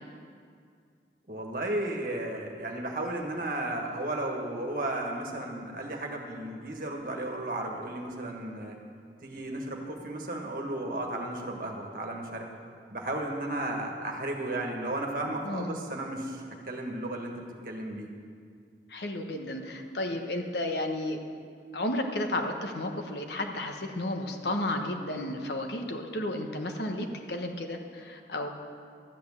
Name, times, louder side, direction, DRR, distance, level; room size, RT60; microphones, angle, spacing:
voice 1, 1.3-8.8 9.2-12.5 12.9-18.1, right 1 dB, 50° right, 1 dB, 1.6 m, -34 dB
voice 2, 15.4-15.8 18.9-21.2 21.7-28.5, left 1 dB, 70° left, 4 dB, 1.2 m, -32 dB
13.0 x 8.8 x 7.3 m, 2.2 s
head